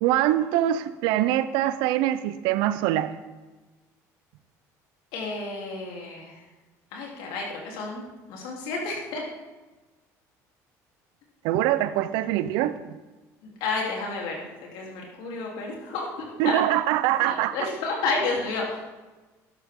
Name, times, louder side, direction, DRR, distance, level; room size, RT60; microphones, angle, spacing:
voice 1, 0.0-3.1 11.4-12.8 16.4-17.5, right 13 dB, 75° right, 14 dB, 0.7 m, -23 dB
voice 2, 5.1-6.4 6.9-8.0 8.3-9.2 13.4-14.5 14.7-16.6 17.2-18.8, left 3 dB, 75° left, -2 dB, 3.4 m, -31 dB
13.0 x 11.5 x 3.7 m, 1.2 s
supercardioid pair, 80°, 8 cm